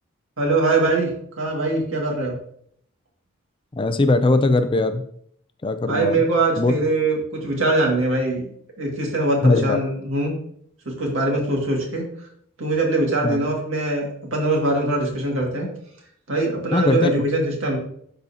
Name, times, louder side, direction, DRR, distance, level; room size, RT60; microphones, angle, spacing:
voice 1, 0.4-2.3 5.9-8.5 8.8-10.3 10.9-12.3 12.6-15.7 16.3-17.8, right 2 dB, 70° right, -1 dB, 2.0 m, -22 dB
voice 2, 3.7-5.1 5.6-6.2 6.6-6.7 9.4-9.8 13.2-13.4 16.7-17.1, left 2 dB, 25° left, 9 dB, 0.4 m, -19 dB
11.5 x 4.0 x 2.8 m, 0.65 s
head